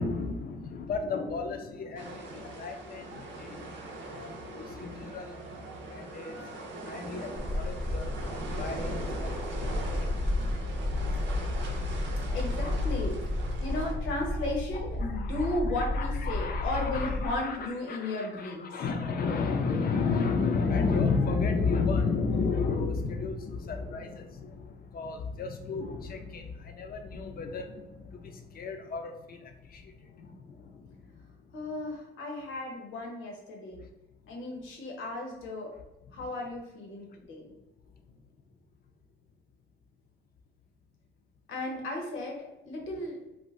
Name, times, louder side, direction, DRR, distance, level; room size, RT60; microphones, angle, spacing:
voice 1, 0.0-5.4 5.9-6.5 6.9-10.1 10.4-12.4 15.1-17.6 17.9-31.0, left 4 dB, 50° left, 5 dB, 0.5 m, -33 dB
sound 1, 2.0-13.9, right 3 dB, 75° right, 0.6 m, -41 dB
sound 2, 7.3-17.3, left 2 dB, 5° right, 0.6 m, -32 dB
voice 2, 12.3-13.2 13.6-18.7 31.5-33.8 34.3-35.7 36.1-37.4 41.5-42.4 42.6-43.2, left 1 dB, 85° left, 0 dB, 0.8 m, -35 dB
2.6 x 2.1 x 3.2 m, 1.0 s
cardioid pair, 90°, 20 cm